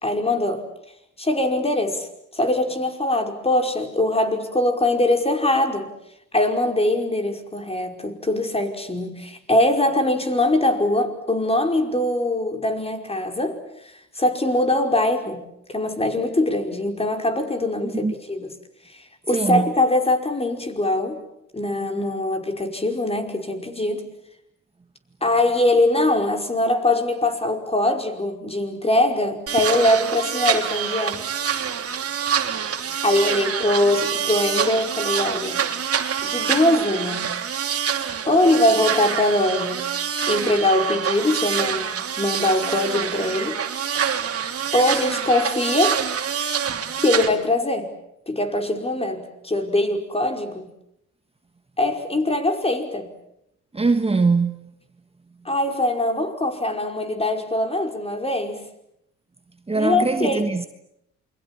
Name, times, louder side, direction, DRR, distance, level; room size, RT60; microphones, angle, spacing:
voice 1, 0.0-0.6 1.2-5.9 6.3-18.5 18.9-21.2 21.5-24.1 25.2-31.2 33.0-35.6 36.2-37.3 38.3-39.9 40.3-43.6 44.7-46.0 47.0-47.9 48.3-50.7 51.8-53.1 55.5-58.7 59.7-60.4, left 1 dB, 20° left, 5.2 m, -22 dB
voice 2, 19.3-19.7 53.7-54.5 59.7-60.7, right 3 dB, 20° right, 1.4 m, -21 dB
sound 1, 29.5-47.3, right 8 dB, 50° right, 3.0 m, -26 dB
28.5 x 23.5 x 8.8 m
cardioid pair, 90°, 30 cm